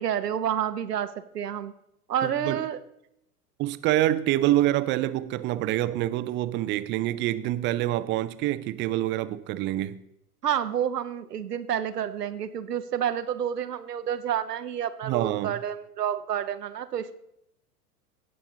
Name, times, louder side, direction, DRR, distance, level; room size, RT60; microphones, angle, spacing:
voice 1, 0.0-1.7 2.1-2.8 10.4-17.2, right 9 dB, 85° right, 0.9 m, -29 dB
voice 2, 2.2-2.7 3.6-10.0 15.0-15.6, right 14 dB, 25° right, 0.5 m, -26 dB
17.0 x 6.0 x 3.8 m
hypercardioid pair, 100°, 46 cm